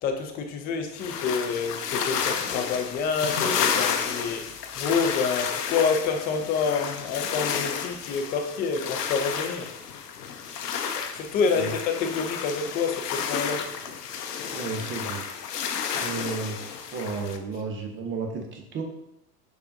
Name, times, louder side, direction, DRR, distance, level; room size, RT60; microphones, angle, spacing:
voice 1, 0.0-4.4 4.8-9.7 11.1-13.6, left 5 dB, 20° left, 5 dB, 0.4 m, -27 dB
sound 1, 1.0-17.4, left 7 dB, 75° left, 0.6 m, -31 dB
voice 2, 14.5-15.2 15.9-18.8, right 4 dB, 25° right, 3 dB, 0.6 m, -33 dB
6.5 x 2.4 x 2.5 m, 0.82 s
figure-of-eight pair, 75°, 48 cm